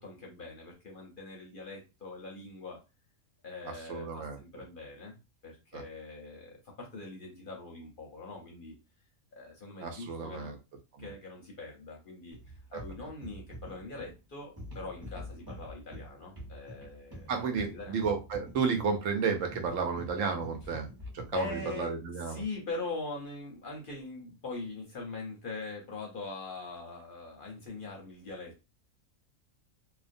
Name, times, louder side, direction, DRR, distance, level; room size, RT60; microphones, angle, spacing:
voice 1, 0.0-2.8 3.4-8.7 9.3-10.6 11.0-12.4 12.7-17.9 21.3-21.9 22.2-28.7, left 3 dB, 55° left, 0 dB, 0.7 m, -42 dB
voice 2, 3.7-4.4 5.7-5.8 9.8-10.6 10.9-11.1 12.7-12.8 17.3-20.9 21.1-22.4, right 5 dB, 75° right, 4 dB, 1.0 m, -32 dB
sound 1, 12.3-21.9, equal, 20° right, 0.8 m, -47 dB
2.4 x 2.1 x 2.5 m, 0.28 s
omnidirectional pair, 1.4 m